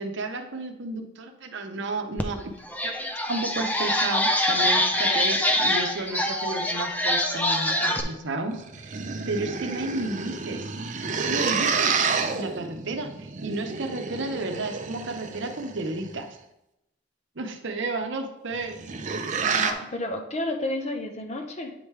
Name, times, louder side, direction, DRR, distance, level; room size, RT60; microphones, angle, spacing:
voice 1, 0.0-2.4 2.8-9.0 9.3-10.7 11.3-12.0 12.3-16.3 17.4-18.8, right 2 dB, 70° right, 5 dB, 0.8 m, -32 dB
sound 1, 2.2-2.3 2.7-8.0, left 1 dB, 10° left, 0.6 m, -24 dB
sound 2, 8.5-16.1 18.5-19.7, right 5 dB, 40° right, 0.6 m, -29 dB
voice 2, 19.4-21.7, left 1 dB, 35° left, 4 dB, 0.8 m, -31 dB
8.9 x 5.1 x 3.2 m, 0.86 s
head